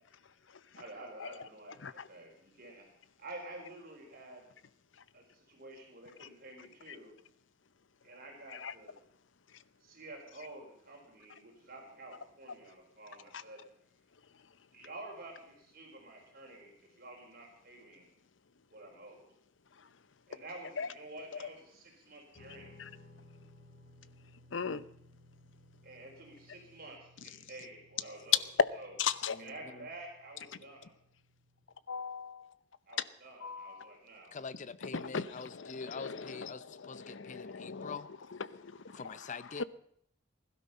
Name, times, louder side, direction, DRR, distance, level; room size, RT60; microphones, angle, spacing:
voice 1, 0.7-2.9 3.2-4.5 5.1-7.1 8.0-9.0 9.8-13.7 14.7-18.1 18.7-19.3 20.3-22.7 25.8-28.4 28.7-29.0 29.4-30.9 32.9-34.4, right 2 dB, 55° right, 4.3 m, -50 dB
Guitar, 22.3-31.6, left 1 dB, 60° left, 5.3 m, -60 dB
voice 2, 24.5-24.8 29.0-29.4 31.9-32.5 33.4-33.9 34.8-38.0 38.5-39.0 39.6-39.7, left 6 dB, 80° left, 0.8 m, -39 dB
voice 3, 29.3-29.9 34.3-38.1 38.9-39.6, left 5 dB, 40° left, 0.6 m, -45 dB
20.5 x 12.0 x 5.5 m
head